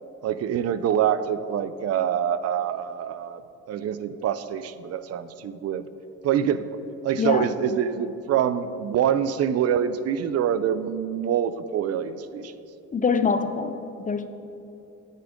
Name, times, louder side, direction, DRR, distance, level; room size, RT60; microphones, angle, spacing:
voice 1, 0.2-3.4 3.7-5.9 6.2-6.7 7.0-12.5, right 9 dB, 55° right, 13 dB, 0.5 m, -25 dB
voice 2, 12.9-14.3, left 5 dB, 25° left, 10 dB, 0.5 m, -24 dB
9.5 x 8.5 x 3.6 m, 2.9 s
cardioid pair, 90°, 30 cm